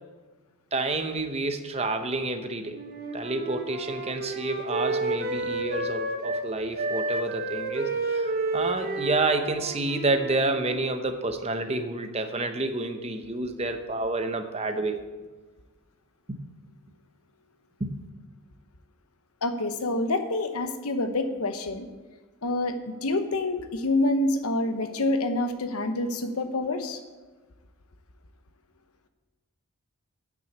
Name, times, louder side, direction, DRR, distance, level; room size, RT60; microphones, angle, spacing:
voice 1, 0.7-2.8 3.1-15.0 16.3-16.4 17.8-18.0, right 2 dB, 30° right, 7 dB, 0.8 m, -29 dB
Wind instrument woodwind instrument, 2.7-6.5 6.7-10.9, right 2 dB, 45° right, 1.3 m, -31 dB
voice 2, 19.4-21.9 22.4-22.7 23.0-27.0, left 2 dB, 85° left, 8 dB, 0.9 m, -27 dB
8.8 x 6.2 x 8.0 m, 1.3 s
head